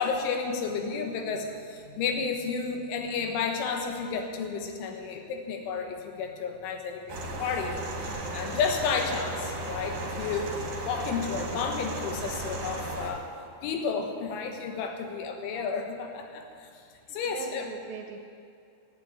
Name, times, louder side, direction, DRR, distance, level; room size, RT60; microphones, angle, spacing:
voice 1, 0.0-7.8 8.0-10.5 10.8-13.3 13.6-16.8 17.1-17.7, left 5 dB, 90° left, 4 dB, 3.8 m, -32 dB
sound 1, 7.1-13.1, right 1 dB, 55° right, 3.3 m, -35 dB
voice 2, 17.1-18.2, right 6 dB, 85° right, 1 dB, 2.0 m, -41 dB
12.0 x 10.0 x 9.5 m, 2.5 s
omnidirectional pair, 5.3 m